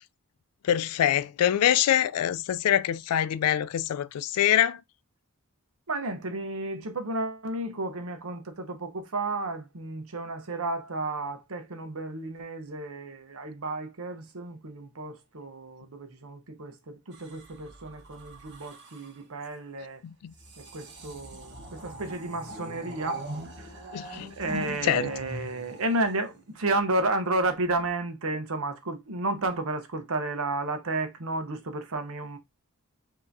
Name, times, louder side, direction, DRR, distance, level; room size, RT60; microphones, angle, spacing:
voice 1, 0.6-4.8 20.0-20.3 23.9-24.3 24.8-25.1, left 11 dB, 90° left, 0.3 m, -24 dB
voice 2, 5.9-20.0 20.6-32.4, right 2 dB, 70° right, 0.8 m, -32 dB
sound 1, 17.1-19.2 20.3-26.7 27.6-27.9, equal, 50° right, 1.1 m, -42 dB
5.6 x 2.8 x 2.6 m
head